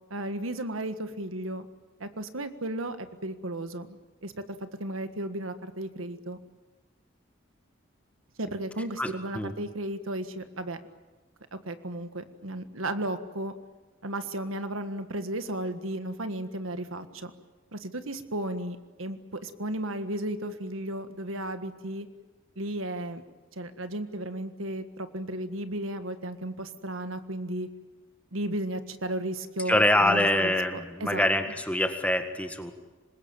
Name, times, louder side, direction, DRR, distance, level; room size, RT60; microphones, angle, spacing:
voice 1, 0.1-1.6 2.0-4.3 4.6-6.4 8.4-10.8 11.5-13.5 14.0-17.3 17.7-22.1 22.5-23.2 23.5-27.7 28.3-31.3, right 1 dB, 85° right, 9 dB, 1.7 m, -34 dB
voice 2, 9.0-9.5 29.7-32.7, left 1 dB, 5° left, 6 dB, 1.8 m, -25 dB
26.0 x 21.0 x 9.0 m, 1.2 s
head